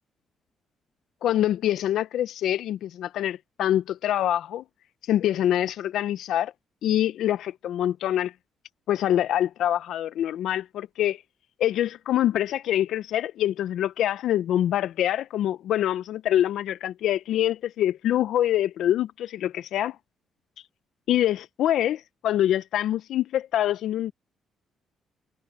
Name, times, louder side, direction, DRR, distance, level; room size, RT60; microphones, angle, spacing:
voice 1, 1.2-4.6 5.1-6.5 6.8-8.3 8.9-11.2 11.6-20.0 21.1-24.1, left 12 dB, 75° left, 0.5 m, -25 dB
cardioid pair, 90°, 0 cm